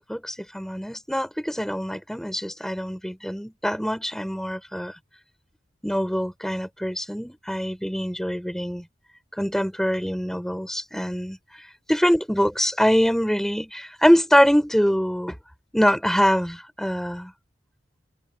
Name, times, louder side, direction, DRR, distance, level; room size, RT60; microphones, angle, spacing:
voice 1, 0.0-4.9 5.8-8.8 9.4-11.4 11.9-15.4 15.7-17.3, equal, ahead, 6.7 m, -24 dB
head